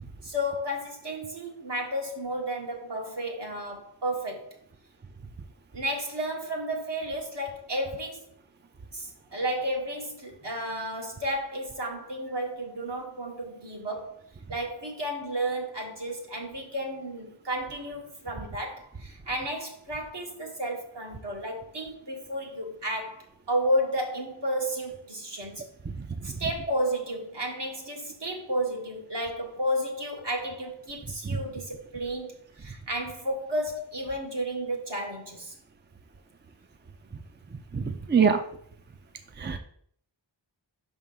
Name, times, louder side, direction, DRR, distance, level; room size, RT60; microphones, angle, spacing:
voice 1, 0.2-4.5 5.7-8.3 8.9-14.2 14.5-25.6 26.2-35.5 38.1-38.4, equal, 65° right, 1.6 m, -32 dB
voice 2, 37.7-38.4 39.4-39.6, right 6 dB, 25° right, 0.5 m, -23 dB
5.7 x 3.5 x 5.5 m
wide cardioid pair, 60°, 44 cm